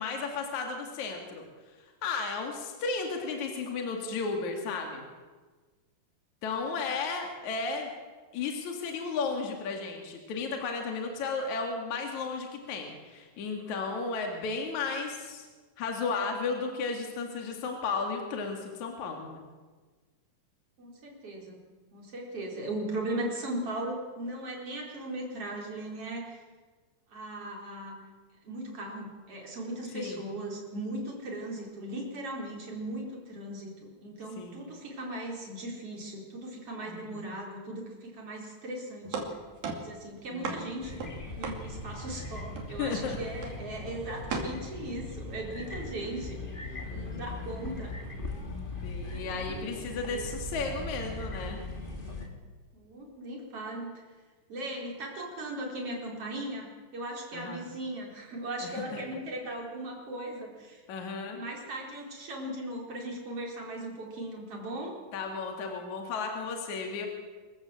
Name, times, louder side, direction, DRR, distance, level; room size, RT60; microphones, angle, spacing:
voice 1, 0.0-1.4 2.0-5.0 6.4-7.9 8.3-15.5 15.8-19.4 29.9-30.2 34.4-34.6 36.9-37.3 40.3-40.7 42.8-43.2 46.9-47.2 48.8-51.6 57.3-57.6 58.6-59.0 60.9-61.4 65.1-67.1, left 4 dB, 60° left, 3 dB, 3.3 m, -34 dB
voice 2, 20.8-21.6 21.9-26.4 27.1-28.0 28.4-39.3 39.6-41.0 41.4-47.9 50.0-50.3 52.7-54.0 54.5-60.8 61.3-65.0, right 1 dB, 40° right, -1 dB, 5.0 m, -38 dB
sound 1, 39.0-42.2 42.6-43.0 43.4-43.7 44.3-44.5, right 4 dB, 80° right, 4.3 m, -37 dB
sound 2, 40.8-52.3, left 2 dB, 20° left, 1.9 m, -39 dB
25.5 x 14.0 x 7.7 m, 1.4 s
omnidirectional pair, 4.1 m